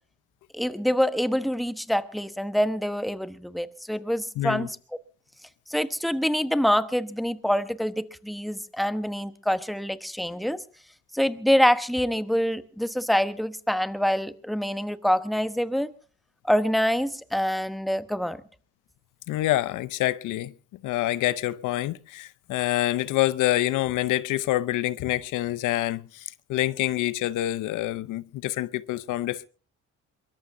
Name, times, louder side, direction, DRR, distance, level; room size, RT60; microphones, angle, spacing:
voice 1, 0.5-4.7 5.7-10.6 11.1-15.9 16.5-18.4, equal, ahead, 1.1 m, -25 dB
voice 2, 4.4-4.7 19.3-20.5 20.8-29.5, left 15 dB, 90° left, 0.7 m, -26 dB
23.5 x 22.5 x 2.7 m
cardioid pair, 90°, 30 cm